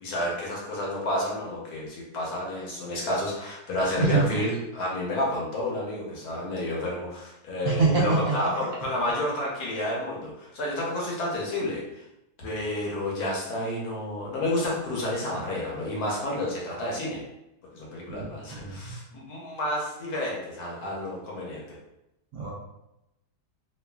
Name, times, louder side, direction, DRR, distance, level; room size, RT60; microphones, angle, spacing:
voice 1, 0.0-12.0 12.4-17.2 17.7-21.8, left 1 dB, 65° left, -4 dB, 1.2 m, -30 dB
voice 2, 3.8-4.2 7.6-8.3 18.1-18.9 22.3-22.5, right 4 dB, 70° right, -4 dB, 0.9 m, -25 dB
3.1 x 2.3 x 2.2 m, 0.89 s
omnidirectional pair, 1.8 m